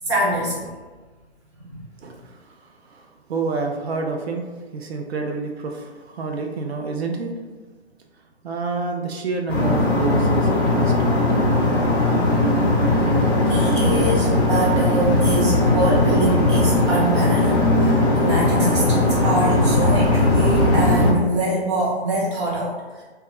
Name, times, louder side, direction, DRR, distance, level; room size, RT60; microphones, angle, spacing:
voice 1, 0.0-0.7 1.6-1.7 13.5-23.0, right 1 dB, 25° right, -6 dB, 0.6 m, -24 dB
voice 2, 2.0-4.5 4.7-7.4 8.4-11.5, right 4 dB, 65° right, 3 dB, 0.5 m, -29 dB
sound 1, 9.5-21.1, left 2 dB, 20° left, 0.5 m, -18 dB
2.2 x 2.2 x 2.8 m, 1.3 s
hypercardioid pair, 145°, 33 cm